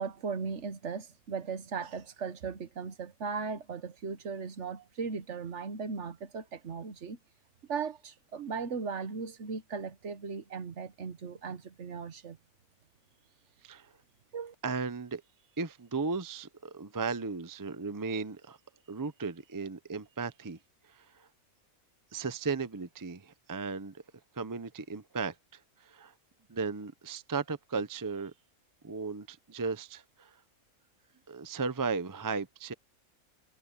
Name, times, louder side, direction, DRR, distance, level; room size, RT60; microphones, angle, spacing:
voice 1, 0.0-7.2 7.7-12.4 14.3-14.5, right 5 dB, 55° right, 1.3 m, -37 dB
voice 2, 14.6-15.2 15.6-18.6 18.9-20.6 20.8-21.3 22.1-24.0 24.3-26.1 26.5-28.3 28.8-30.4 31.3-32.7, right 4 dB, 25° right, 0.5 m, -36 dB
omnidirectional pair, 1.5 m